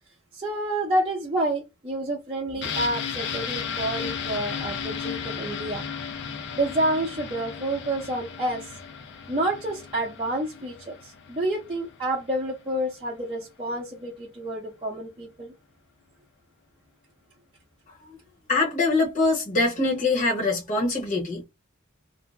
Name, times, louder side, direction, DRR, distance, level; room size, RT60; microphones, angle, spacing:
voice 1, 0.3-5.8 6.6-8.8 9.3-15.5, right 1 dB, 25° right, 0.6 m, -29 dB
sound 1, 2.6-12.2 12.6-12.7, left 6 dB, 60° left, 0.5 m, -35 dB
voice 2, 18.5-21.4, left 3 dB, 40° left, 0.9 m, -23 dB
2.6 x 2.1 x 3.1 m
head